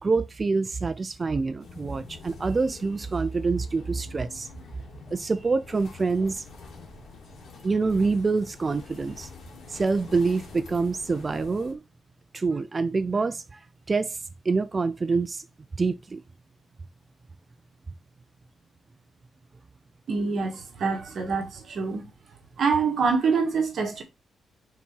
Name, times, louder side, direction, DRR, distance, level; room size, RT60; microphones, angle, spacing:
voice 1, 0.0-4.5 5.1-6.4 7.6-9.3 9.7-11.8 12.3-13.6 13.9-14.2 14.5-15.5 15.7-16.2, right 4 dB, 25° right, 0.4 m, -26 dB
sound 1, 1.6-11.7, left 4 dB, 60° left, 2.4 m, -46 dB
voice 2, 20.1-22.0 22.6-24.0, right 5 dB, 55° right, 1.5 m, -25 dB
5.9 x 4.0 x 4.6 m
wide cardioid pair, 150°, 0 cm